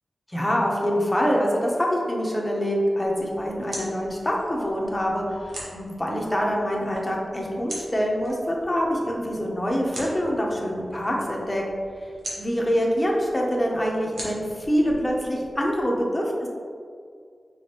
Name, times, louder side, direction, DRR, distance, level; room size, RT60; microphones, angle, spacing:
voice 1, 0.3-11.6 12.4-16.5, equal, 15° left, -2 dB, 0.7 m, -25 dB
sound 1, 3.0-15.8, right 1 dB, 80° right, 1.1 m, -43 dB
5.0 x 3.6 x 2.9 m, 2.2 s
wide cardioid pair, 105°, 0 cm